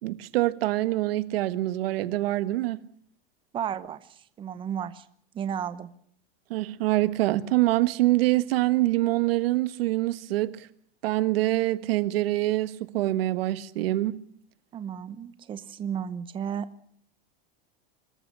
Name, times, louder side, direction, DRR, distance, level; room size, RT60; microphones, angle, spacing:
voice 1, 0.0-2.8 6.5-10.7 11.0-14.2, right 17 dB, 80° right, 1.4 m, -25 dB
voice 2, 3.5-5.0 5.3-5.9 14.7-16.7, right 8 dB, 15° right, 0.8 m, -33 dB
23.5 x 13.5 x 9.9 m
supercardioid pair, 170°, 29 cm